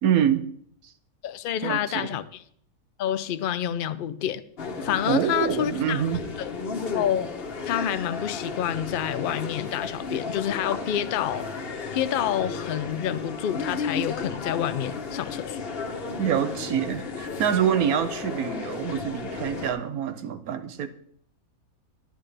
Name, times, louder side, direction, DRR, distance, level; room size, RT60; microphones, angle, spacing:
voice 1, 0.0-0.4 1.6-2.2 5.1-6.2 16.2-20.9, right 9 dB, 80° right, 1.2 m, -26 dB
voice 2, 1.2-2.2 3.0-4.4 4.8-6.0 6.4-6.5 6.9-7.3 7.7-11.5 11.9-15.6, left 10 dB, 80° left, 0.4 m, -28 dB
sound 1, 4.6-19.7, left 4 dB, 45° left, 1.1 m, -34 dB
10.0 x 10.0 x 3.3 m
omnidirectional pair, 1.5 m